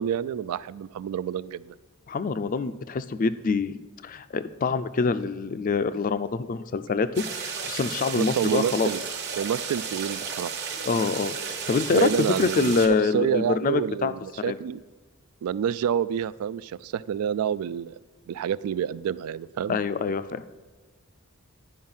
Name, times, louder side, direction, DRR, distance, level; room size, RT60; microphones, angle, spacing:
voice 1, 0.0-1.7 8.1-9.0 9.4-10.5 11.9-12.9 13.1-14.8 15.4-17.9 18.3-19.8, right 8 dB, 80° right, 17 dB, 0.3 m, -28 dB
voice 2, 2.1-8.9 10.8-11.4 11.7-14.1 14.4-14.6 19.7-20.5, left 4 dB, 40° left, 13 dB, 0.4 m, -25 dB
sound 1, 7.1-12.9, right 6 dB, 50° right, 1.1 m, -33 dB
10.5 x 5.2 x 5.5 m, 1.3 s
head